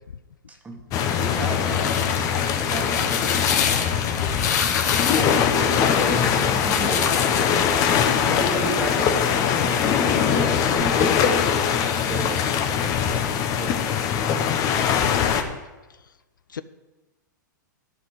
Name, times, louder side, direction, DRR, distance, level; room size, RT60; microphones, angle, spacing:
voice 1, 0.5-4.8 5.1-7.6 8.2-11.5 11.8-14.2, right 3 dB, 15° right, 2 dB, 1.6 m, -35 dB
sound 1, 0.9-15.4, left 8 dB, 35° left, 0.9 m, -22 dB
sound 2, 1.5-7.6, left 7 dB, 60° left, 1.3 m, -27 dB
voice 2, 8.0-8.5 14.8-15.6 16.5-16.6, left 8 dB, 85° left, 14 dB, 0.5 m, -35 dB
11.5 x 4.3 x 8.1 m, 1.1 s
hypercardioid pair, 110°, 10 cm